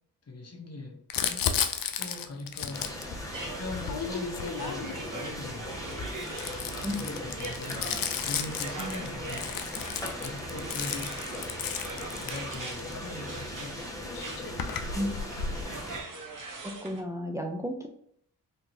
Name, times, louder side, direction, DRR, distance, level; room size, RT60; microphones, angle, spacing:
voice 1, 0.3-1.6 2.0-3.0 3.6-6.3 7.0-7.9 8.2-9.7 10.2-11.8 12.2-14.0, left 2 dB, 40° left, 3 dB, 1.0 m, -41 dB
Crumpling crinkling, 1.1-5.1 5.8-12.9 13.8-13.9 14.0-15.6, left 7 dB, 60° left, 0.5 m, -34 dB
sound 1, 2.7-16.0, left 1 dB, 10° left, 1.0 m, -39 dB
sound 2, 3.3-17.0, right 3 dB, 50° right, 0.9 m, -42 dB
voice 2, 16.6-17.9, equal, 10° right, 1 dB, 0.5 m, -32 dB
3.5 x 2.8 x 2.6 m, 0.68 s
supercardioid pair, 40°, 40 cm